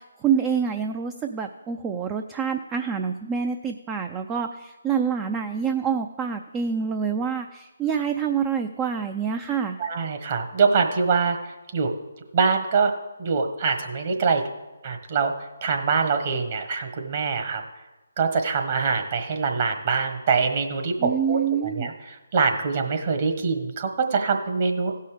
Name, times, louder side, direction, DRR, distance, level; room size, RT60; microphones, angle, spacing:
voice 1, 0.0-9.8 21.0-21.9, right 7 dB, 15° right, 6 dB, 0.4 m, -27 dB
voice 2, 9.8-11.4 11.7-11.9 12.3-12.9 13.2-14.4 14.8-15.3 15.6-17.6 18.2-21.4 21.7-21.9 22.3-25.0, right 5 dB, 40° right, 4 dB, 1.4 m, -24 dB
16.0 x 5.6 x 5.0 m, 1.1 s
figure-of-eight pair, 150°, 0 cm